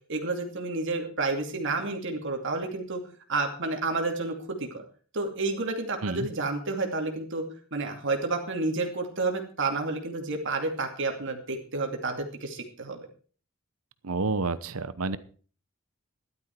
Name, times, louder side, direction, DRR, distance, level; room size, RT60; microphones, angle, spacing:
voice 1, 0.1-3.0 3.3-4.8 5.1-7.5 7.7-13.1, right 3 dB, 60° right, 3 dB, 2.5 m, -30 dB
voice 2, 14.0-15.2, right 3 dB, 85° right, 15 dB, 1.0 m, -29 dB
14.0 x 12.0 x 4.6 m, 0.42 s
head